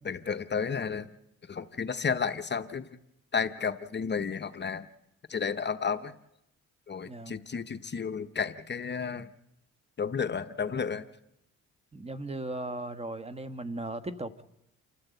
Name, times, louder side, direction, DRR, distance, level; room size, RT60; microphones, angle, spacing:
voice 1, 0.0-1.1 1.5-2.9 3.3-4.9 5.3-6.1 6.9-9.3 10.0-11.0, left 6 dB, 35° left, 11 dB, 0.9 m, -32 dB
voice 2, 7.0-7.4 11.9-14.4, right 2 dB, 20° right, 12 dB, 1.3 m, -37 dB
29.0 x 13.0 x 8.2 m, 0.85 s
cardioid pair, 90°, 30 cm